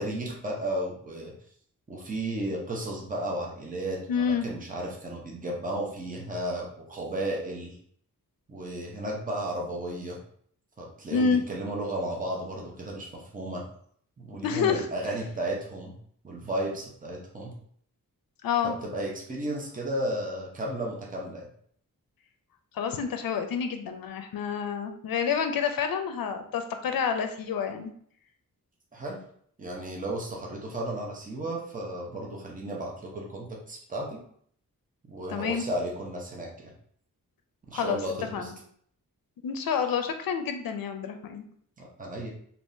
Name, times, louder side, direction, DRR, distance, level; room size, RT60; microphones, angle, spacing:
voice 1, 0.0-1.3 1.9-7.8 8.5-10.2 10.8-13.6 14.2-15.9 16.2-17.5 18.6-21.5 28.9-29.2 29.6-34.2 35.1-36.7 37.7-38.5 41.8-42.3, right 1 dB, 25° right, -2 dB, 0.7 m, -34 dB
voice 2, 4.1-4.4 11.1-11.4 14.4-14.9 18.4-18.7 22.7-27.9 35.3-35.6 37.7-38.0 38.3-38.5 39.4-41.4, left 6 dB, 75° left, 6 dB, 0.5 m, -28 dB
3.5 x 2.9 x 2.6 m, 0.63 s
wide cardioid pair, 170°, 35 cm